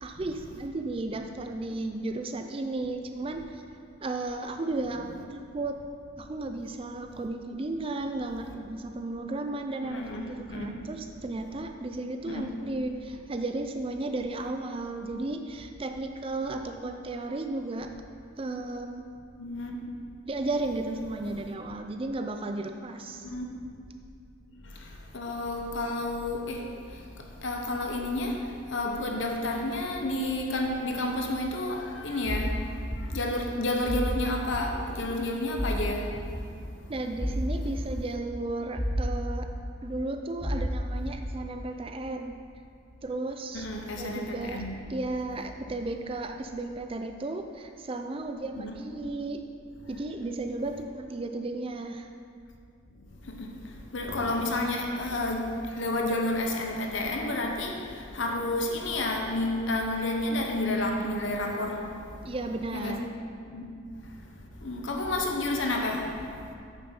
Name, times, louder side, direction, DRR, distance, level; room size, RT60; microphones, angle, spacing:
voice 1, 0.0-3.4 4.0-5.8 6.2-17.9 18.4-19.1 20.2-23.3 36.9-39.5 39.8-42.4 43.0-43.7 44.0-44.6 44.9-49.5 49.9-52.1 62.2-63.1, right 2 dB, 25° right, 0.4 m, -34 dB
voice 2, 9.8-10.7 12.2-12.5 19.4-19.8 23.1-23.6 24.8-27.0 27.4-36.2 43.5-45.0 48.5-48.7 50.7-50.8 53.2-53.6 53.9-62.0 62.7-63.0 63.5-63.7 64.6-66.3, left 2 dB, 65° left, 0.9 m, -31 dB
sound 1, 32.3-32.5 32.9-33.0 33.9-34.1 34.5-34.7 35.6-35.8 36.1-36.2 37.2-37.4 37.8-37.9 38.8-39.0 39.4-39.5 40.4-40.7 41.0-41.2, equal, 20° left, 0.9 m, -30 dB
9.3 x 7.1 x 4.4 m
head